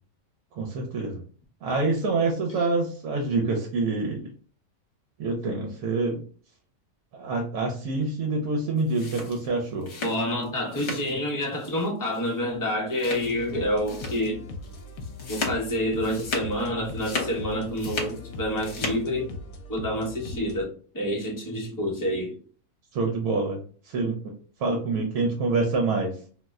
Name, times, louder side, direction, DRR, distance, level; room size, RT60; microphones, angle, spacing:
voice 1, 0.5-1.2 1.6-4.3 5.2-6.2 7.1-9.9 22.9-24.3 24.6-26.2, right 3 dB, 80° right, 1.1 m, -26 dB
sound 1, 8.8-11.2 11.5-11.9 12.1-12.3 12.9-13.5 13.9-14.3 14.6-16.6 16.9-18.2 18.5-19.0, left 3 dB, 55° left, 1.1 m, -34 dB
voice 2, 10.0-14.5 15.3-19.3 19.7-22.4, equal, 30° left, 0.3 m, -28 dB
sound 2, 13.2-20.6, left 3 dB, 75° left, 1.0 m, -40 dB
2.7 x 2.1 x 3.4 m
omnidirectional pair, 1.6 m